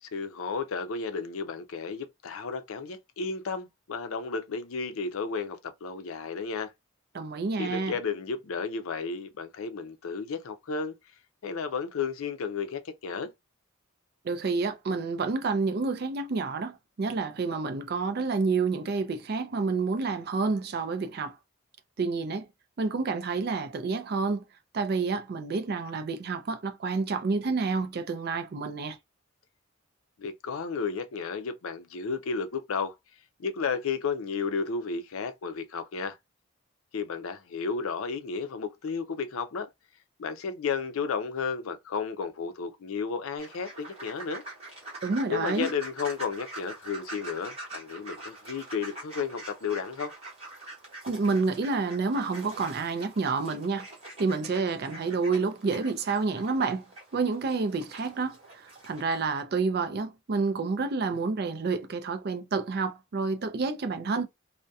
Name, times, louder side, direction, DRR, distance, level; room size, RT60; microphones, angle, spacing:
voice 1, 0.0-6.7 7.6-11.0 11.4-13.3 30.2-32.9 33.4-36.2 36.9-39.7 40.2-44.4 45.3-50.1, left 5 dB, 75° left, 0.5 m, -33 dB
voice 2, 7.1-8.0 14.2-21.4 22.0-22.5 22.8-24.4 24.7-29.0 45.0-45.7 51.1-53.9 54.2-56.9 57.1-64.3, right 4 dB, 45° right, 0.4 m, -29 dB
sound 1, 43.4-59.4, right 2 dB, 30° right, 0.9 m, -45 dB
2.6 x 2.1 x 2.3 m
head